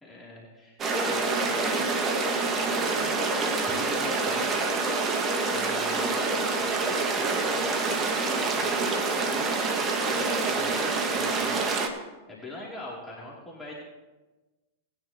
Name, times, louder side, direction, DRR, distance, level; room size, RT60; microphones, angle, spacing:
voice 1, 0.0-2.0 2.5-4.6 5.5-6.3 6.6-11.6 12.3-13.8, left 1 dB, 10° left, -6 dB, 2.7 m, -41 dB
sound 1, 0.8-11.9, right 3 dB, 30° right, 1.4 m, -27 dB
18.5 x 10.0 x 2.9 m, 1.2 s
hypercardioid pair, 110°, 0 cm